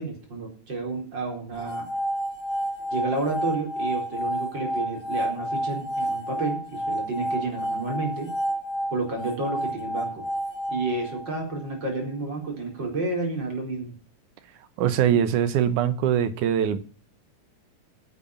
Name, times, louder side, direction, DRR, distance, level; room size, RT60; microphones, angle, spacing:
voice 1, 0.0-1.9 2.9-8.3 8.9-10.3 10.7-13.9, right 3 dB, 35° right, 4.8 m, -30 dB
sound 1, 1.6-11.7, equal, 25° left, 1.5 m, -30 dB
voice 2, 14.8-16.8, right 9 dB, 80° right, 2.6 m, -22 dB
10.5 x 8.2 x 7.2 m
omnidirectional pair, 3.5 m